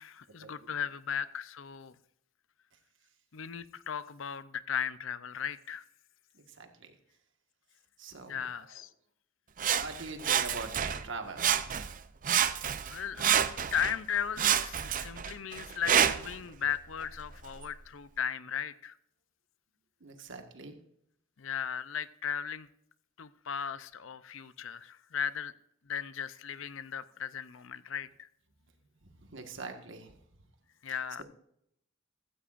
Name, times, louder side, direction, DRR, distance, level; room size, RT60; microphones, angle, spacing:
voice 1, 0.0-2.0 3.3-5.8 8.3-8.9 12.9-13.3 13.7-19.0 21.4-22.7 23.2-25.5 25.9-28.3 30.8-31.2, left 8 dB, 70° left, 15 dB, 0.6 m, -36 dB
voice 2, 6.6-6.9 8.0-8.4 9.7-11.9 20.0-20.8 29.2-30.1 31.2-31.3, right 3 dB, 65° right, 5 dB, 1.6 m, -43 dB
Sawing, 9.6-11.1 11.4-12.0 12.2-14.0 14.4-16.4 17.0-17.1, right 9 dB, 40° right, 0.6 m, -28 dB
15.5 x 14.0 x 2.6 m, 0.73 s
head